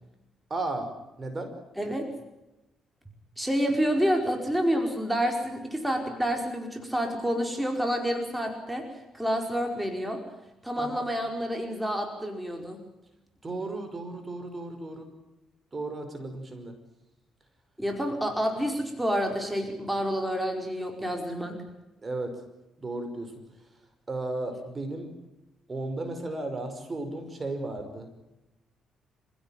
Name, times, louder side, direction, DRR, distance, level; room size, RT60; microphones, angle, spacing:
voice 1, 0.5-0.9 1.2-1.5 10.8-11.1 13.4-15.1 15.7-16.7 22.0-22.3 22.8-23.3 24.1-25.1 25.7-28.1, right 2 dB, 30° right, 8 dB, 5.5 m, -34 dB
voice 2, 1.8-2.1 3.4-8.8 9.1-10.2 10.6-12.8 17.8-21.6, equal, 5° right, 3 dB, 5.0 m, -28 dB
27.5 x 16.5 x 9.1 m, 0.96 s
cardioid pair, 90°, 0 cm